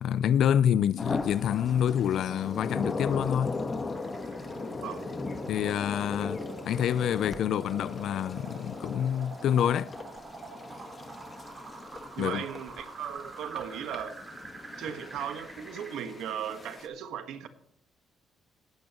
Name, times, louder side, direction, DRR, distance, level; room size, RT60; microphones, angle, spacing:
voice 1, 0.0-3.6 5.5-9.9 12.2-12.5, left 9 dB, 75° left, 0.4 m, -27 dB
sound 1, 1.0-16.9, left 3 dB, 35° left, 1.4 m, -38 dB
sound 2, 4.0-16.0, right 3 dB, 35° right, 4.4 m, -46 dB
voice 2, 12.2-14.2 14.8-17.5, right 9 dB, 85° right, 1.4 m, -37 dB
19.0 x 8.8 x 3.0 m
cardioid pair, 90°, 0 cm